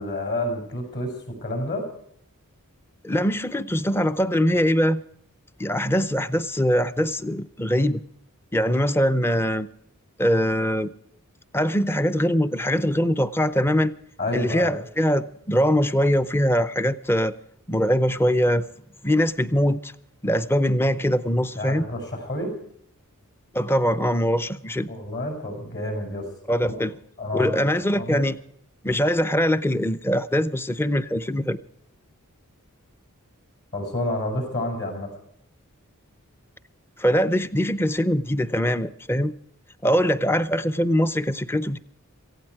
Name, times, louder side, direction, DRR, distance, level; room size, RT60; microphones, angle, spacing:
voice 1, 0.0-1.8 14.2-14.8 21.6-22.5 24.9-26.3 27.2-28.2 33.7-35.1, left 1 dB, 55° left, 3 dB, 6.8 m, -29 dB
voice 2, 3.0-5.0 5.6-8.0 8.5-9.7 10.2-10.9 11.5-13.9 14.3-17.3 17.7-18.7 19.0-19.9 20.2-21.8 23.5-24.9 26.5-26.9 27.3-28.4 28.8-31.6 37.0-39.3 39.8-41.8, equal, 10° left, 14 dB, 0.6 m, -22 dB
18.0 x 16.0 x 4.7 m, 0.69 s
head